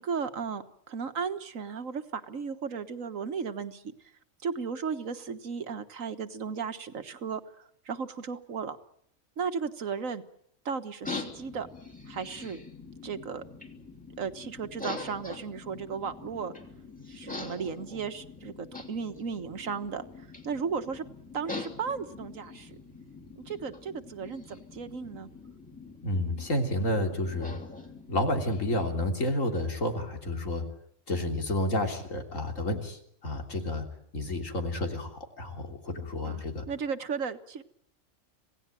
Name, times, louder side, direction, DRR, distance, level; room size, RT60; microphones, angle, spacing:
voice 1, 0.0-3.9 4.4-8.8 9.4-10.2 10.7-11.7 12.1-12.6 13.0-13.4 14.2-16.5 17.1-21.1 21.3-22.8 23.4-25.3 36.2-37.6, right 6 dB, 75° right, 10 dB, 1.7 m, -35 dB
sound 1, 11.0-29.1, left 3 dB, 5° left, 3.1 m, -44 dB
voice 2, 26.0-27.6 28.1-30.6 31.1-33.9 34.1-36.7, left 1 dB, 75° left, 3 dB, 3.7 m, -30 dB
27.0 x 18.0 x 9.0 m, 0.70 s
omnidirectional pair, 1.4 m